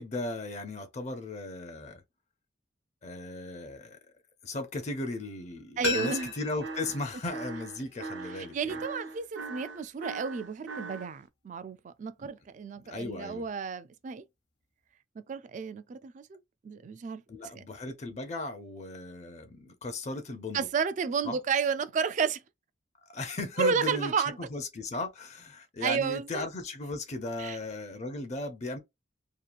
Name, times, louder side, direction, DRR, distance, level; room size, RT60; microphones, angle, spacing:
voice 1, 0.0-2.0 3.0-4.0 4.4-8.8 12.9-13.5 17.3-20.7 21.2-21.4 23.1-24.1 24.4-28.8, left 2 dB, 35° left, 0.5 m, -36 dB
sound 1, 5.8-8.6 8.9-9.0, left 5 dB, 65° left, 0.8 m, -38 dB
voice 2, 5.8-6.3 8.4-14.2 15.3-17.2 17.6-17.7 20.5-22.4 23.6-24.4 25.8-26.5 27.4-27.6, right 5 dB, 40° right, 0.3 m, -32 dB
sound 2, 5.9-11.1, right 3 dB, 80° right, 0.7 m, -40 dB
2.9 x 2.3 x 2.4 m
head